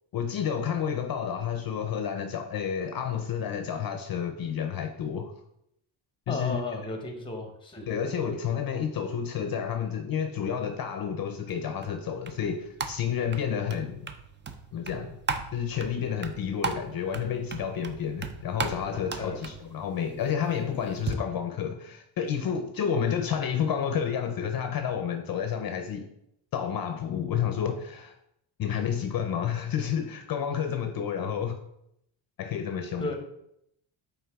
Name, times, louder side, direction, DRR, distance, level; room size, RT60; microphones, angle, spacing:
voice 1, 0.1-5.3 6.3-6.8 7.9-14.1 14.7-15.2 15.5-26.1 26.5-28.1 28.6-31.6 32.4-33.2, left 8 dB, 50° left, 6 dB, 0.6 m, -30 dB
voice 2, 6.3-7.9 18.9-19.5 33.0-33.2, left 2 dB, 10° left, 4 dB, 0.9 m, -34 dB
sound 1, 11.5-21.1, right 5 dB, 25° right, 0.3 m, -38 dB
8.7 x 3.6 x 3.5 m, 0.77 s
wide cardioid pair, 165°, 45 cm